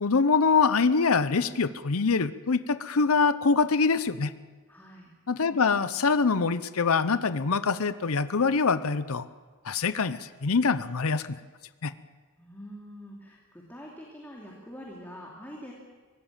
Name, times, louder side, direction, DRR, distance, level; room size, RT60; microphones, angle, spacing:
voice 1, 0.0-4.3 5.3-9.3 9.6-11.4 11.8-11.9, left 4 dB, 70° left, 13 dB, 0.7 m, -24 dB
voice 2, 4.7-5.1 12.4-15.7, equal, 10° left, -3 dB, 2.7 m, -45 dB
24.0 x 18.0 x 7.4 m, 1.4 s
head